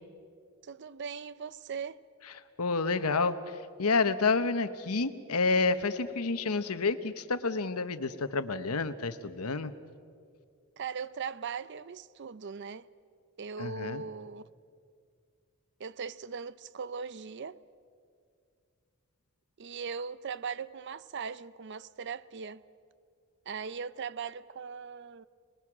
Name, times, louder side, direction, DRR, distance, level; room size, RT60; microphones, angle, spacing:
voice 1, 0.6-2.0 10.8-12.9 13.4-14.5 15.8-17.6 19.6-22.6 23.5-25.3, right 6 dB, 55° right, 0.5 m, -39 dB
voice 2, 2.6-9.7 13.6-14.0, left 4 dB, 85° left, 1.0 m, -29 dB
27.5 x 20.5 x 6.2 m
head